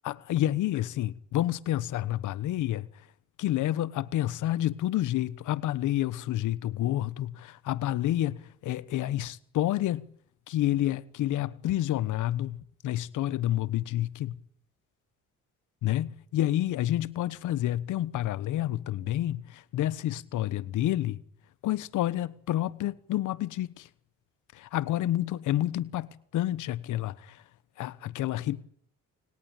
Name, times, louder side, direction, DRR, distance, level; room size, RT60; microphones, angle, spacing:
voice 1, 0.0-2.9 3.4-10.1 10.5-14.4 15.8-21.2 21.6-23.9 24.5-27.4 27.8-28.6, left 13 dB, 80° left, 1.1 m, -29 dB
29.5 x 18.5 x 8.9 m
cardioid pair, 90°, 30 cm